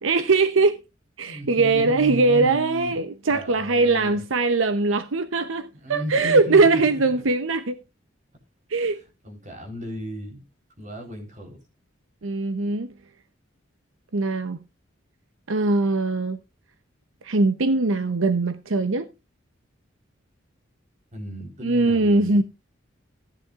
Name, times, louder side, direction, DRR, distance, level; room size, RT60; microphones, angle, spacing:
voice 1, 0.0-0.8 1.2-7.8 8.7-9.0 12.2-12.9 14.1-14.6 15.5-16.4 17.2-19.1 21.6-22.4, right 3 dB, 80° right, 0.8 m, -21 dB
voice 2, 1.3-3.0 3.3-4.2 5.8-7.2 9.2-10.4 10.8-11.6 21.1-22.4, equal, 40° right, 3.9 m, -35 dB
15.0 x 10.0 x 2.4 m
head